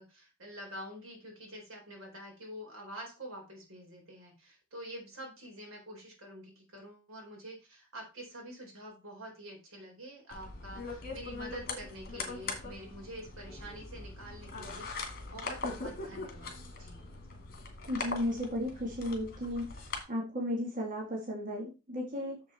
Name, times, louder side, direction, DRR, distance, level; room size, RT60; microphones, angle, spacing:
voice 1, 0.0-17.0, equal, 80° right, 0 dB, 4.1 m, -47 dB
sound 1, 10.3-20.0, left 3 dB, 45° left, 2.4 m, -41 dB
voice 2, 17.9-19.8 20.1-22.4, left 1 dB, 40° right, -1 dB, 1.8 m, -34 dB
7.2 x 6.5 x 4.3 m, 0.29 s
head